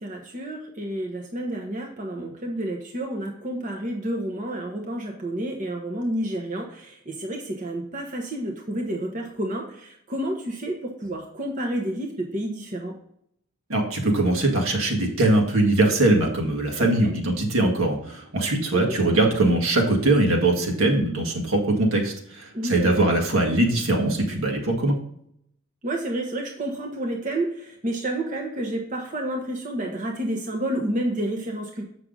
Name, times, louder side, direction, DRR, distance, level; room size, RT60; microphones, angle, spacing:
voice 1, 0.0-12.9 16.8-17.1 18.9-19.0 22.5-23.0 25.8-31.8, right 1 dB, 35° right, 1 dB, 1.0 m, -30 dB
voice 2, 13.7-25.0, right 2 dB, 75° right, 1 dB, 1.9 m, -21 dB
7.7 x 6.2 x 3.8 m, 0.70 s
head